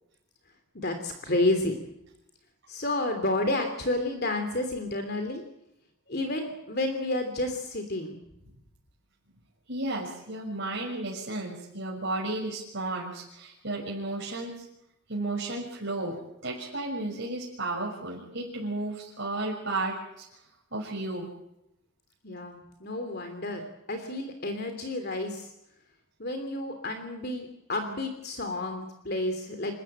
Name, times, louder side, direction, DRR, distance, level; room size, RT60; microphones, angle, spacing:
voice 1, 0.7-1.8 2.7-5.4 6.1-8.2 22.2-23.6 23.9-25.5 26.2-29.7, left 2 dB, 45° left, 6 dB, 3.0 m, -30 dB
voice 2, 9.7-14.7 15.1-20.3 20.7-21.3, right 2 dB, 55° right, -3 dB, 6.2 m, -33 dB
28.5 x 14.5 x 9.0 m, 0.83 s
head